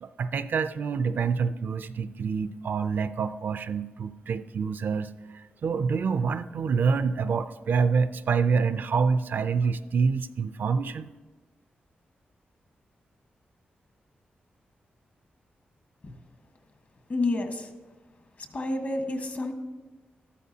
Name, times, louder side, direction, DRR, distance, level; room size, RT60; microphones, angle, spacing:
voice 1, 0.0-11.1, right 5 dB, 65° right, 12 dB, 0.4 m, -27 dB
voice 2, 17.1-17.7 18.5-19.5, left 2 dB, 55° left, 5 dB, 1.4 m, -29 dB
13.0 x 12.5 x 2.8 m, 1.2 s
cardioid pair, 75°, 4 cm